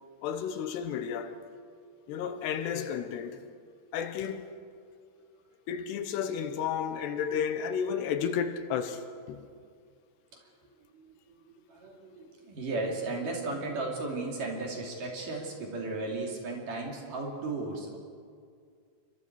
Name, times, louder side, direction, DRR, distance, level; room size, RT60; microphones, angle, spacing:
voice 1, 0.2-1.4 2.1-3.5 3.9-4.6 5.7-9.5, left 7 dB, 80° left, 3.0 m, -32 dB
voice 2, 10.9-11.4 11.7-18.0, right 2 dB, 50° right, 4.3 m, -35 dB
28.5 x 24.5 x 4.8 m
omnidirectional pair, 5.0 m